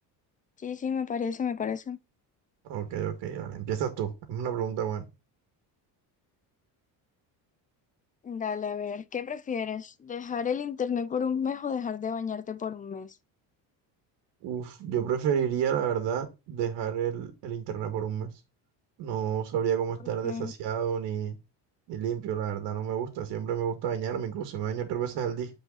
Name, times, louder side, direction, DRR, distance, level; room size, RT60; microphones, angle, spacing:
voice 1, 0.6-2.0 8.2-13.2 20.0-20.5, left 7 dB, 20° left, 0.4 m, -32 dB
voice 2, 2.6-5.1 14.4-18.3 19.0-21.4 21.9-25.5, right 8 dB, 80° right, 2.1 m, -30 dB
9.0 x 4.9 x 4.1 m
cardioid pair, 155°, 41 cm